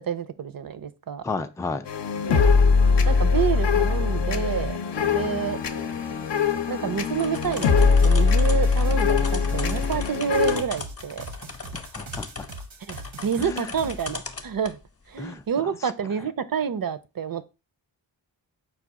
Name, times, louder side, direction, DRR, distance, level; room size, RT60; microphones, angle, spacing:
voice 1, 0.0-1.2 2.2-2.5 3.1-4.8 5.1-5.6 6.7-11.2 12.9-13.0 13.2-14.8 15.1-17.4, right 7 dB, 50° right, 0.6 m, -28 dB
voice 2, 1.2-1.9 11.7-12.3 13.4-13.7 15.2-15.9, left 3 dB, 10° left, 0.3 m, -33 dB
sound 1, 1.9-10.6, left 5 dB, 65° left, 0.7 m, -21 dB
sound 2, 7.1-14.8, left 3 dB, 35° left, 0.8 m, -38 dB
sound 3, 7.3-14.1, right 2 dB, 80° right, 1.0 m, -41 dB
4.8 x 2.3 x 4.6 m
cardioid pair, 55°, 45 cm